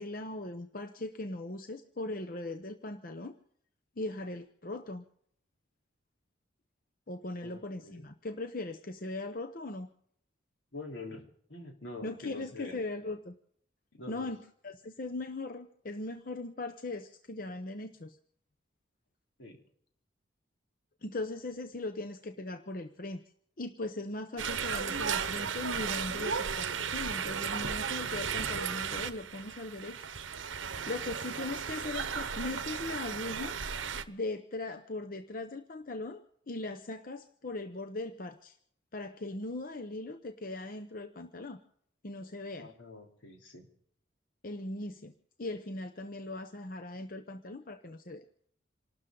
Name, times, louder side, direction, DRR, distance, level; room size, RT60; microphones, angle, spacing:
voice 1, 0.0-3.4 4.0-5.0 7.1-9.9 12.0-13.3 14.1-18.2 21.0-23.2 23.6-30.0 30.9-33.6 34.1-38.6 38.9-41.6 42.0-42.7 44.4-45.1 45.4-48.2, left 2 dB, 45° left, 8 dB, 0.8 m, -39 dB
voice 2, 7.4-8.0 10.7-11.2 11.5-12.8 13.9-14.3 19.4-19.6 42.6-43.7, left 2 dB, 80° left, 2 dB, 3.6 m, -45 dB
sound 1, 24.4-34.0, right 6 dB, 90° right, 1.0 m, -35 dB
28.0 x 12.5 x 3.9 m, 0.65 s
head